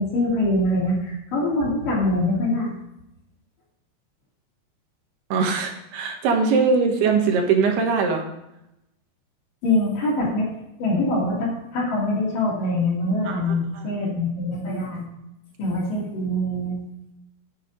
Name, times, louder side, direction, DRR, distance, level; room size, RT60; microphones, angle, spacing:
voice 1, 0.0-2.7 9.6-10.5 10.8-15.0 15.6-16.8, left 1 dB, 50° left, -4 dB, 3.8 m, -24 dB
voice 2, 5.3-8.2 13.3-13.6 13.8-13.9, right 5 dB, 70° right, 3 dB, 3.1 m, -21 dB
9.2 x 8.4 x 5.2 m, 0.86 s
omnidirectional pair, 5.2 m